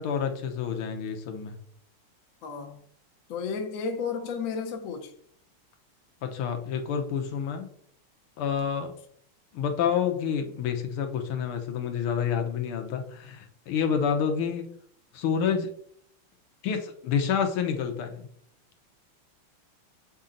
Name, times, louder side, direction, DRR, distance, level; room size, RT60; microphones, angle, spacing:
voice 1, 0.0-1.6 6.2-7.7 8.4-8.9 9.5-14.7 15.1-15.7 16.6-18.3, left 7 dB, 80° left, 5 dB, 1.7 m, -28 dB
voice 2, 2.4-2.8 3.3-5.1, left 5 dB, 55° left, 4 dB, 1.0 m, -32 dB
7.2 x 4.2 x 3.8 m, 0.63 s
omnidirectional pair, 2.4 m